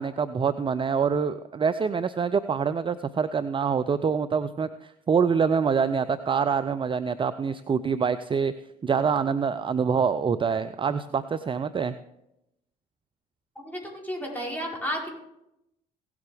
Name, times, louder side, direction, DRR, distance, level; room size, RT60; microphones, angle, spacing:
voice 1, 0.0-8.5 8.8-11.9, right 6 dB, 25° right, 12 dB, 0.5 m, -25 dB
voice 2, 13.5-15.2, equal, 10° left, -2 dB, 4.9 m, -32 dB
17.0 x 8.3 x 3.5 m, 0.84 s
hypercardioid pair, 50°, 20 cm